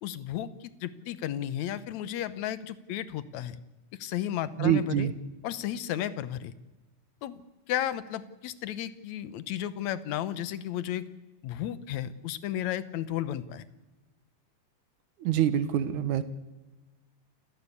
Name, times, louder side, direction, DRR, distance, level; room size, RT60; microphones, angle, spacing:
voice 1, 0.0-3.6 4.0-5.1 5.4-6.5 7.2-7.4 7.7-11.0 11.4-13.7, left 11 dB, 70° left, 14 dB, 2.2 m, -33 dB
voice 2, 4.6-5.1 15.2-16.2, right 10 dB, 75° right, 12 dB, 2.6 m, -25 dB
29.0 x 15.5 x 8.4 m, 1.1 s
omnidirectional pair, 3.5 m